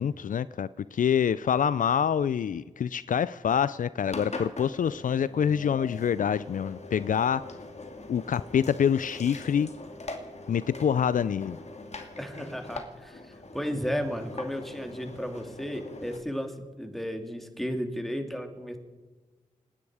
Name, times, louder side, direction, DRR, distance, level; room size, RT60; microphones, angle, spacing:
voice 1, 0.0-7.5 8.1-9.7 10.5-11.6, left 8 dB, 70° left, 18 dB, 0.4 m, -26 dB
Engine, 4.1-16.2, left 2 dB, 50° left, 2.3 m, -42 dB
voice 2, 12.2-18.8, equal, ahead, 5 dB, 2.7 m, -34 dB
28.5 x 10.0 x 4.9 m, 1.3 s
cardioid pair, 45°, 14 cm